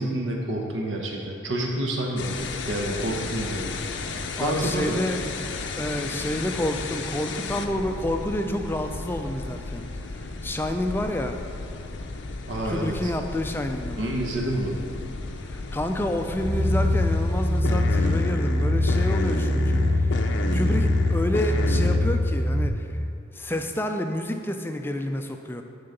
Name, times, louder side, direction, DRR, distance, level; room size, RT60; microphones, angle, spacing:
voice 1, 0.0-2.3 2.7-3.9 4.4-5.0 12.5-13.1 14.0-14.8, right 1 dB, 75° right, -1 dB, 0.9 m, -28 dB
sound 1, 2.2-22.0, left 3 dB, 70° left, 0.6 m, -33 dB
voice 2, 4.4-5.2 5.8-9.8 10.4-11.4 12.6-14.1 15.5-19.8 20.2-22.9 23.3-25.6, left 1 dB, 10° left, 5 dB, 0.4 m, -29 dB
sound 2, 16.4-22.7, left 1 dB, 25° right, 1.1 m, -23 dB
9.5 x 3.8 x 6.6 m, 2.5 s
head